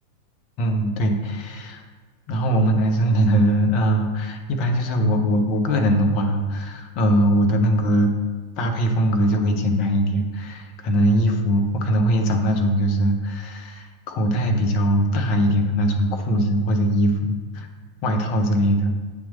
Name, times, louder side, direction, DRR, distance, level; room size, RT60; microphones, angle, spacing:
voice 1, 0.6-1.8 2.3-8.1 8.6-13.9 14.1-17.7 18.0-18.9, equal, 40° left, 3 dB, 0.8 m, -21 dB
8.7 x 3.1 x 4.1 m, 1.4 s
figure-of-eight pair, 90°, 0 cm